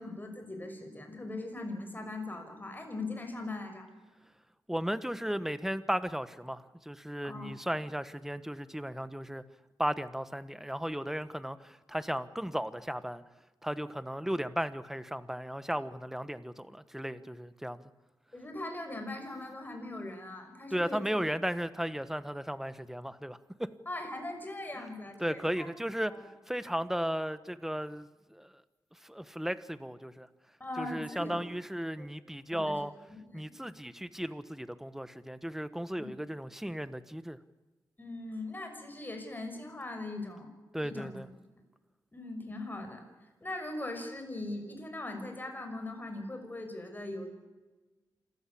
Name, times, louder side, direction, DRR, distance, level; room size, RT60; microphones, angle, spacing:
voice 1, 0.0-3.9 7.2-7.5 18.3-21.0 23.9-25.7 26.1-26.2 30.6-31.4 32.0-32.1 32.5-32.8 33.1-33.5 36.0-36.1 38.0-40.5 40.8-41.2 42.1-43.0 43.4-47.3, left 2 dB, 25° left, 5 dB, 6.1 m, -40 dB
voice 2, 4.7-9.4 9.8-13.2 13.6-17.8 20.7-23.7 24.7-24.9 25.2-28.6 29.0-30.3 30.8-32.9 33.3-37.4 40.7-41.3, equal, 5° right, 14 dB, 1.3 m, -35 dB
27.0 x 14.5 x 8.6 m, 1.2 s
cardioid pair, 65°, 8 cm